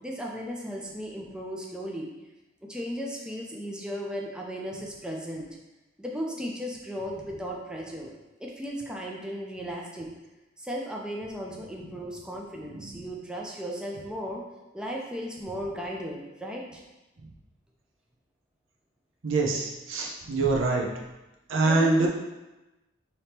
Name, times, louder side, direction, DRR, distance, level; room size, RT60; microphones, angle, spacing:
voice 1, 0.0-2.1 2.6-5.5 6.0-8.1 8.4-10.1 10.6-14.4 14.7-16.8 21.6-22.1, equal, 5° right, -1 dB, 0.4 m, -35 dB
voice 2, 19.2-20.9 21.5-22.1, right 3 dB, 80° right, 0 dB, 0.7 m, -25 dB
3.4 x 2.9 x 4.2 m, 1.0 s
head